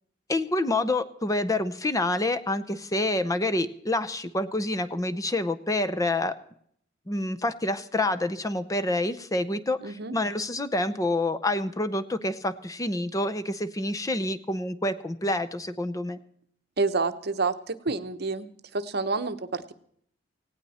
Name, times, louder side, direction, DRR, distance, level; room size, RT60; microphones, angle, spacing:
voice 1, 0.3-6.3 7.1-16.2, left 2 dB, 15° left, 12 dB, 0.7 m, -27 dB
voice 2, 9.8-10.1 16.8-19.7, right 3 dB, 55° right, 11 dB, 0.9 m, -29 dB
18.0 x 17.0 x 4.2 m, 0.65 s
head